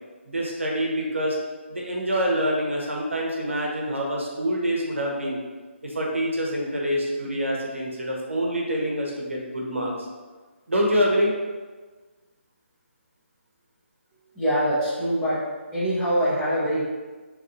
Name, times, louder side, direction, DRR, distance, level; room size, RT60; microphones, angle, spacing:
voice 1, 0.3-1.4 1.7-5.4 5.8-10.1 10.7-11.3, equal, 70° right, -2 dB, 0.8 m, -26 dB
voice 2, 14.3-15.4 15.7-16.8, equal, 5° left, -11 dB, 0.7 m, -23 dB
3.5 x 3.0 x 2.5 m, 1.4 s
figure-of-eight pair, 145°, 7 cm